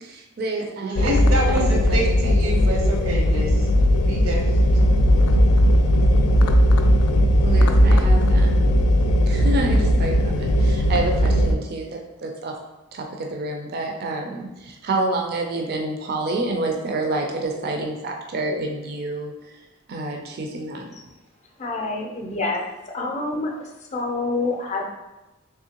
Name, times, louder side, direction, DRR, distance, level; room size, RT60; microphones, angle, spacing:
voice 1, 0.0-1.2 1.5-2.0 7.4-8.8 9.3-12.5 12.9-19.3 19.9-20.9, right 2 dB, 45° right, 2 dB, 0.4 m, -28 dB
voice 2, 0.8-3.7 4.1-4.4, right 1 dB, 85° right, -1 dB, 0.9 m, -27 dB
sound 1, 1.0-11.5, equal, 85° left, 0.4 m, -17 dB
voice 3, 21.6-22.6 22.9-23.5 23.9-24.8, left 3 dB, 30° left, 1 dB, 0.5 m, -26 dB
3.6 x 3.2 x 2.8 m, 1.0 s
head